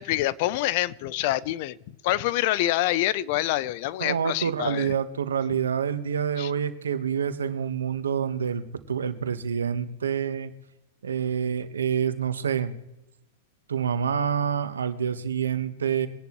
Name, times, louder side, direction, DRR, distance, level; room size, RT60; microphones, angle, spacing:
voice 1, 0.0-1.8 2.0-4.9 6.4-6.5, left 15 dB, 55° left, 19 dB, 0.6 m, -26 dB
voice 2, 4.0-10.5 11.0-12.7 13.7-16.1, right 7 dB, 90° right, 10 dB, 1.2 m, -27 dB
23.0 x 11.0 x 3.1 m, 0.95 s
hypercardioid pair, 115°, 0 cm